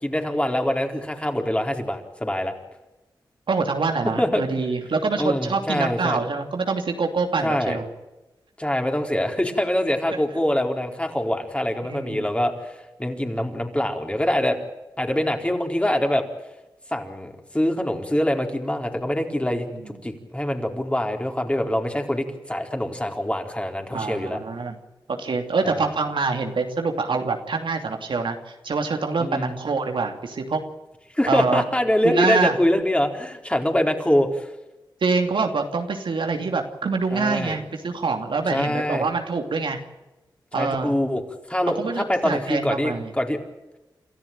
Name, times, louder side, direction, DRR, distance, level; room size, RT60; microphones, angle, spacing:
voice 1, 0.0-2.5 4.0-4.4 5.2-6.2 7.4-7.8 8.6-14.6 15.0-16.2 16.9-24.4 25.6-25.9 29.2-29.6 31.2-34.5 37.1-37.6 38.5-39.1 40.5-41.2 41.5-43.4, left 1 dB, 15° left, 3 dB, 4.2 m, -24 dB
voice 2, 3.5-7.9 11.9-12.3 23.9-24.8 25.1-28.4 28.6-30.6 31.3-31.6 32.0-32.6 35.0-39.8 40.5-40.9 41.8-43.1, right 4 dB, 75° right, 5 dB, 2.8 m, -25 dB
27.5 x 14.0 x 9.1 m, 1.0 s
cardioid pair, 45°, 9 cm